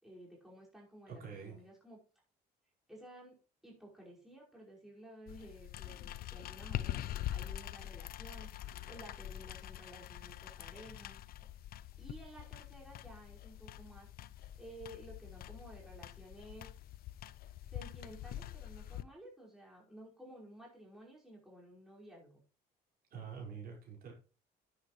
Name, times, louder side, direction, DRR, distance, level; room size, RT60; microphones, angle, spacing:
voice 1, 0.0-2.0 2.9-3.4 3.6-8.5 8.9-11.2 12.0-14.1 14.3-16.7 17.7-22.4, right 1 dB, ahead, -4 dB, 5.2 m, -54 dB
voice 2, 1.1-1.6 23.1-24.1, right 6 dB, 60° right, -1 dB, 5.2 m, -46 dB
sound 1, 5.3-19.0, left 12 dB, 60° left, 0.6 m, -44 dB
10.5 x 9.6 x 3.2 m, 0.36 s
cardioid pair, 110°, 17 cm